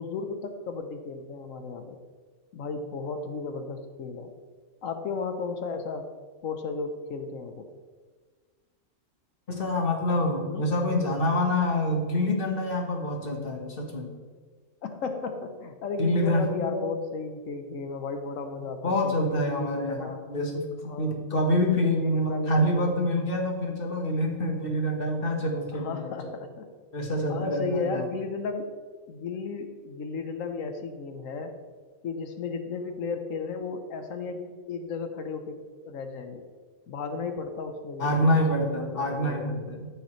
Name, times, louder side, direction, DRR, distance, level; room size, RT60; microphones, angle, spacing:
voice 1, 0.0-2.0 2.5-4.3 4.8-6.1 6.4-7.7 10.5-10.7 14.8-20.2 20.8-21.2 21.8-22.9 25.7-26.7 27.3-28.7 29.1-31.6 32.0-36.5 36.9-38.3 38.6-39.8, left 4 dB, 90° left, 7 dB, 1.3 m, -34 dB
voice 2, 9.5-14.1 16.0-16.4 16.7-16.9 18.8-26.3 26.9-28.1 38.0-39.9, left 1 dB, 45° left, 1 dB, 1.5 m, -26 dB
14.0 x 6.8 x 3.1 m, 1.5 s
omnidirectional pair, 1.3 m